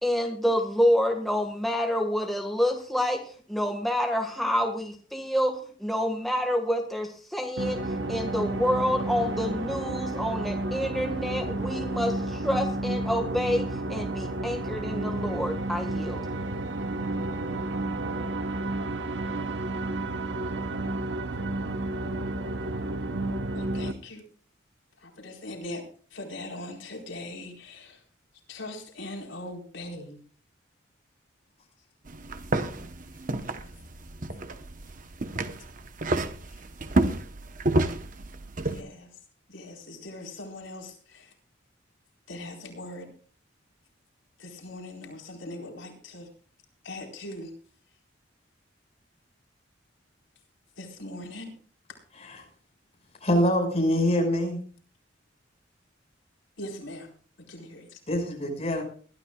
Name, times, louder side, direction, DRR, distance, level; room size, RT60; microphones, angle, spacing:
voice 1, 0.0-3.2 3.5-7.8 8.1-16.2, equal, ahead, 2 dB, 1.6 m, -28 dB
sound 1, 7.6-23.9, right 2 dB, 65° right, 1.2 m, -31 dB
voice 2, 23.5-24.2 25.0-25.8 26.1-28.0 28.5-30.2 38.6-39.1 39.5-41.3 42.3-43.1 44.4-46.3 46.8-47.5 50.8-51.5 56.6-57.1 57.5-58.0, left 1 dB, 80° left, 0 dB, 4.5 m, -40 dB
sound 2, 32.1-38.8, right 2 dB, 45° right, 1.0 m, -30 dB
voice 3, 53.2-54.6 58.1-58.8, equal, 35° left, 2 dB, 5.8 m, -25 dB
22.0 x 13.0 x 2.4 m, 0.43 s
head